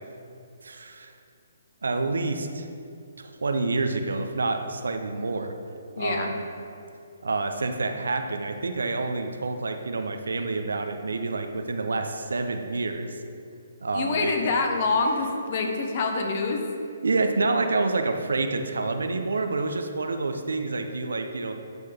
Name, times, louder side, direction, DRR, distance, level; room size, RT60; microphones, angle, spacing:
voice 1, 0.6-1.1 1.8-2.7 3.2-5.6 6.0-6.4 7.2-13.2 13.8-14.5 17.0-21.5, right 3 dB, 75° right, 6 dB, 0.8 m, -28 dB
voice 2, 6.0-6.3 13.9-16.6, left 3 dB, 45° left, 3 dB, 1.4 m, -26 dB
12.0 x 6.5 x 3.6 m, 2.5 s
figure-of-eight pair, 140°, 0 cm